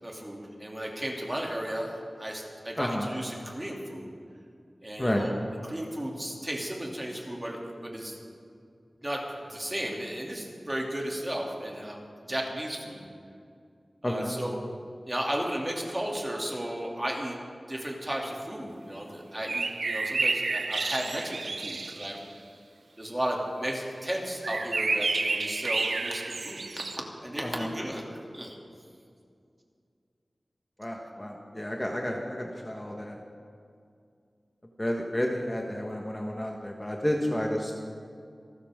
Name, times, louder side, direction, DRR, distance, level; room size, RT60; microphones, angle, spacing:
voice 1, 0.0-4.1 4.8-5.3 5.6-8.2 9.0-9.2 9.5-13.1 14.0-14.6 15.1-17.4 17.7-22.2 23.0-28.1 28.3-28.6, right 1 dB, 20° right, -1 dB, 2.8 m, -34 dB
voice 2, 2.8-3.1 5.0-5.3 14.0-14.4 27.4-27.7 30.8-33.2 34.8-37.7, left 1 dB, 15° left, 0 dB, 1.3 m, -31 dB
sound 1, 19.5-22.2 24.4-27.0, right 3 dB, 75° right, 0.7 m, -30 dB
27.0 x 13.0 x 3.7 m, 2.3 s
wide cardioid pair, 90°, 0 cm